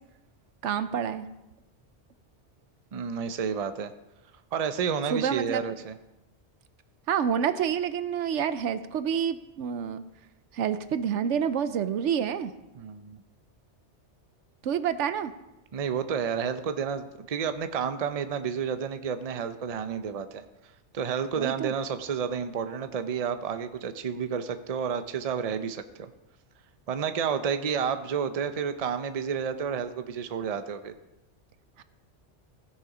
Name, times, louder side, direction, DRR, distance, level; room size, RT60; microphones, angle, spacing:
voice 1, 0.6-1.3 5.1-5.6 7.1-10.0 10.5-12.5 14.6-15.3 21.4-21.7 31.8-31.9, right 8 dB, 80° right, 12 dB, 1.0 m, -28 dB
voice 2, 2.9-3.9 4.5-6.0 12.7-13.2 15.7-20.4 20.9-26.1 26.9-30.9, right 7 dB, 40° right, 9 dB, 0.6 m, -30 dB
16.0 x 6.8 x 5.0 m, 0.98 s
omnidirectional pair, 1.2 m